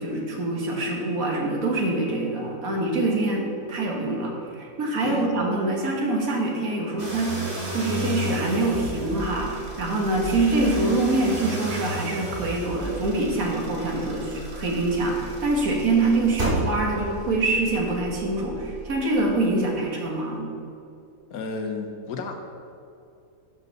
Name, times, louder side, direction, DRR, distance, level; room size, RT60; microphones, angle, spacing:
voice 1, 0.0-20.5, right 2 dB, 70° right, -1 dB, 1.8 m, -25 dB
voice 2, 5.0-5.3 21.3-22.4, left 4 dB, 75° left, 4 dB, 1.3 m, -32 dB
sound 1, 7.0-19.4, right 1 dB, 35° right, 1.6 m, -33 dB
12.0 x 5.5 x 4.0 m, 2.6 s
omnidirectional pair, 1.6 m